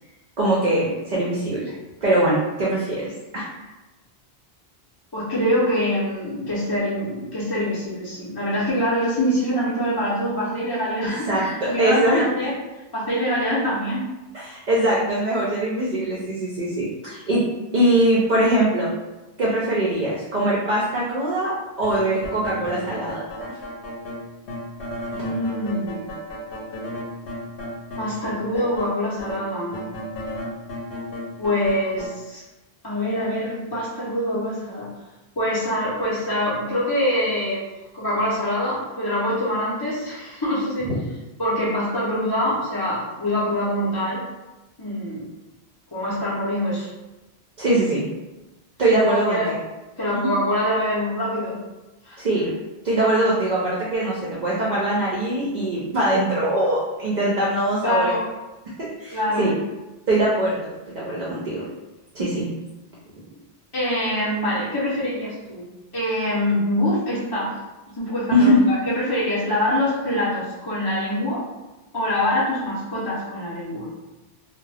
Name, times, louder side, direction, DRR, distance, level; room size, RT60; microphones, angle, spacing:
voice 1, 0.4-1.7 2.0-3.4 11.3-12.3 14.3-17.4 17.7-18.9 19.4-23.2 40.9-41.0 47.6-48.0 48.8-49.6 50.1-50.3 52.2-52.5 52.8-58.1 59.0-59.5 60.1-61.7 62.1-62.5 68.3-68.6, right 1 dB, 50° right, -6 dB, 0.6 m, -22 dB
voice 2, 5.1-12.5 12.9-14.1 25.1-26.1 28.0-29.8 31.4-32.4 32.8-34.9 35.4-37.6 37.9-40.9 41.4-44.2 44.8-45.2 45.9-46.9 48.9-49.5 50.0-51.6 52.0-52.2 57.8-58.2 59.1-59.5 63.7-65.7 65.9-67.6 68.0-71.4 71.9-73.9, equal, 25° left, -10 dB, 0.6 m, -24 dB
sound 1, 21.8-28.9 29.2-32.1, equal, 65° left, 0.8 m, -33 dB
2.2 x 2.1 x 3.2 m, 1.1 s
omnidirectional pair, 1.1 m